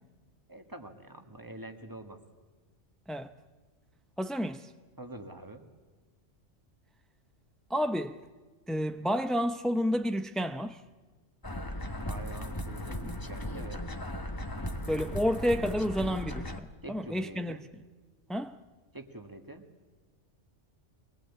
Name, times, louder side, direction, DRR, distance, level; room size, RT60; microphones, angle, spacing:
voice 1, 0.5-2.2 5.0-5.6 12.1-13.8 16.8-17.6 18.9-19.7, right 1 dB, 15° right, 1.7 m, -45 dB
voice 2, 4.2-4.7 7.7-8.2 8.7-10.8 14.9-17.6 18.3-18.6, equal, ahead, 0.3 m, -30 dB
sound 1, 11.4-16.6, left 1 dB, 20° left, 1.2 m, -37 dB
24.0 x 19.5 x 8.5 m
omnidirectional pair, 1.2 m